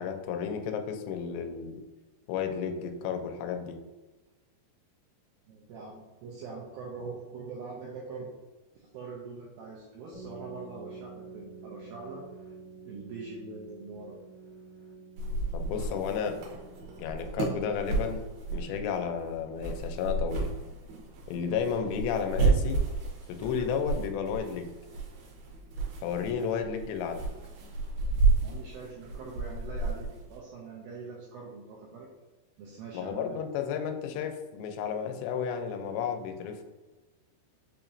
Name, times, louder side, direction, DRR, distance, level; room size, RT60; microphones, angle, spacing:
voice 1, 0.0-1.8 2.3-3.8 15.5-16.4 17.0-18.2 18.5-20.5 21.3-22.8 23.3-24.7 26.0-27.3 32.9-36.6, left 7 dB, 90° left, 6 dB, 2.8 m, -32 dB
voice 2, 5.5-8.3 8.7-12.2 12.8-14.2 18.5-18.8 26.3-26.5 28.4-32.1 32.6-33.4, right 4 dB, 90° right, -3 dB, 2.0 m, -43 dB
sound 1, 10.1-17.6, right 4 dB, 70° left, 1.9 m, -48 dB
sound 2, 15.2-30.4, right 3 dB, 70° right, 2.7 m, -32 dB
6.9 x 2.9 x 2.5 m, 1.2 s
omnidirectional pair, 5.0 m